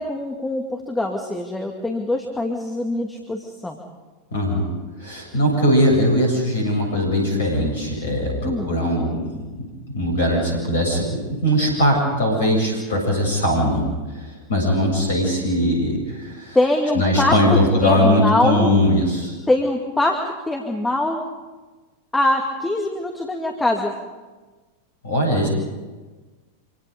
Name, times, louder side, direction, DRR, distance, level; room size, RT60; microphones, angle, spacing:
voice 1, 0.0-3.8 8.4-8.7 16.5-17.4 17.8-18.7 19.5-21.2 22.1-23.9, left 1 dB, 10° left, 1 dB, 2.2 m, -23 dB
voice 2, 4.3-4.7 5.0-13.8 14.1-16.6 16.9-19.3 25.0-25.5, equal, 65° left, 1 dB, 7.8 m, -20 dB
27.0 x 25.0 x 5.3 m, 1.3 s
figure-of-eight pair, 90°, 0 cm